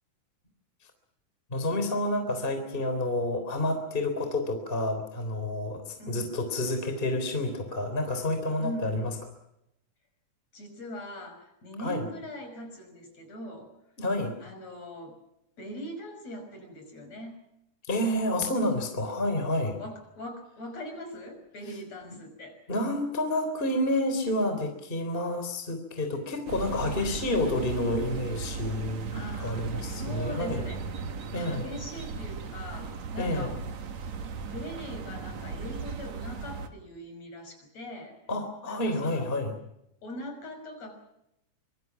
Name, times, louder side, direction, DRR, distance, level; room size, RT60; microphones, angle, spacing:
voice 1, 1.5-9.1 11.8-12.1 14.0-14.3 17.9-19.8 22.7-30.6 31.3-31.7 33.2-33.5 38.3-39.5, left 1 dB, 15° left, 6 dB, 3.6 m, -29 dB
voice 2, 6.0-6.3 8.6-9.1 10.5-13.7 14.4-15.2 15.6-17.4 19.8-22.6 29.1-30.9 31.3-33.6 34.4-38.2 38.6-39.3 40.0-41.0, left 1 dB, 55° left, 5 dB, 6.9 m, -41 dB
sound 1, 26.5-36.7, right 5 dB, 60° right, 3.0 m, -36 dB
25.5 x 24.0 x 6.0 m, 0.83 s
omnidirectional pair, 3.7 m